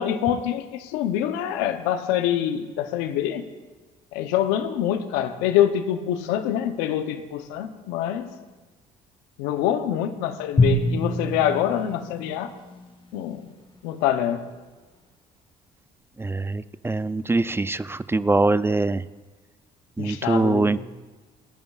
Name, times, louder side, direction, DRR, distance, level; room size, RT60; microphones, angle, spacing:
voice 1, 0.0-3.4 4.1-8.3 9.4-12.5 13.1-13.5 13.8-14.4 20.0-20.8, left 10 dB, 90° left, 9 dB, 0.8 m, -25 dB
Drum, 10.6-13.5, left 1 dB, 30° left, 1.6 m, -26 dB
voice 2, 16.2-19.0 20.0-20.8, right 2 dB, 15° right, 15 dB, 0.4 m, -23 dB
27.0 x 10.5 x 2.4 m, 1.3 s
supercardioid pair, 70°, 17 cm